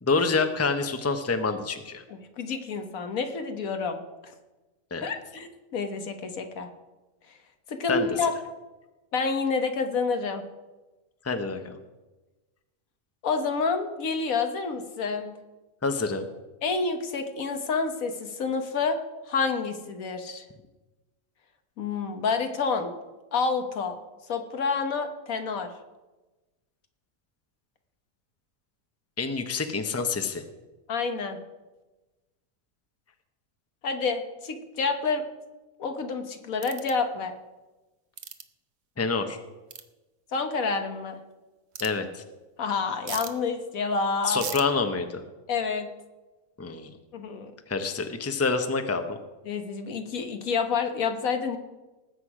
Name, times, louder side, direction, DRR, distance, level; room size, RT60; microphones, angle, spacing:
voice 1, 0.0-2.0 4.9-5.1 7.9-8.1 11.2-11.8 15.8-16.3 29.2-30.4 39.0-39.4 41.8-42.2 44.3-45.2 46.6-46.9 47.7-49.2, left 4 dB, 15° left, 7 dB, 0.7 m, -27 dB
voice 2, 2.1-4.0 4.2-4.3 5.0-6.7 7.7-8.3 9.1-10.4 13.2-15.3 16.6-19.0 19.3-20.4 21.8-22.9 23.3-23.9 24.3-25.7 30.9-31.4 33.8-35.2 35.8-37.3 40.3-41.2 42.6-44.4 45.5-45.9 47.1-47.5 49.4-51.6, left 4 dB, 85° left, 6 dB, 1.6 m, -28 dB
sound 1, 36.6-36.9 38.2-38.4 39.7-39.8 41.7-41.9 43.1-43.3 44.4-44.6, right 7 dB, 55° right, 1.0 m, -36 dB
19.0 x 8.2 x 4.9 m, 1.2 s
omnidirectional pair, 1.4 m